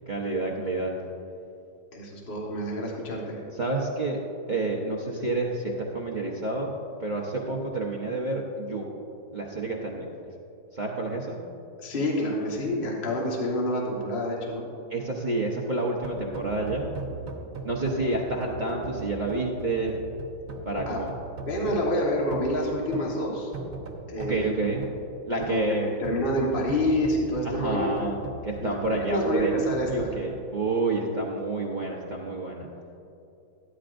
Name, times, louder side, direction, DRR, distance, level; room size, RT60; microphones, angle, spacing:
voice 1, 0.1-0.9 3.5-4.2 4.5-6.7 7.0-8.9 9.3-10.0 10.7-11.4 14.9-16.9 17.6-19.9 20.6-21.1 24.3-24.9 25.3-25.9 27.4-28.2 28.4-29.5 29.9-32.7, right 2 dB, 70° right, -3 dB, 0.4 m, -29 dB
voice 2, 1.9-3.4 11.8-14.6 20.9-21.0 21.5-23.5 24.1-24.7 25.5-27.9 28.6-30.1, left 1 dB, 30° left, -2 dB, 1.4 m, -28 dB
sound 1, 16.0-30.1, right 3 dB, 40° right, 1.2 m, -40 dB
14.0 x 10.0 x 2.5 m, 2.7 s
omnidirectional pair, 2.2 m